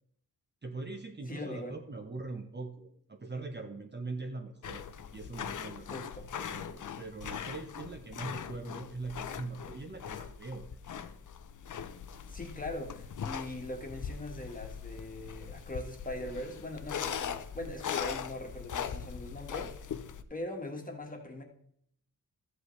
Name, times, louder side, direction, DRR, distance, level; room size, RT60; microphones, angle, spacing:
voice 1, 0.6-4.8 5.1-5.9 6.3-10.9, right 3 dB, 30° right, 4 dB, 0.8 m, -42 dB
voice 2, 1.3-1.8 5.9-6.3 12.3-19.7 20.3-21.4, left 1 dB, 20° left, 2 dB, 1.5 m, -41 dB
sound 1, 4.6-20.2, left 7 dB, 55° left, 0.6 m, -40 dB
13.0 x 7.9 x 3.2 m, 0.69 s
wide cardioid pair, 135°, 37 cm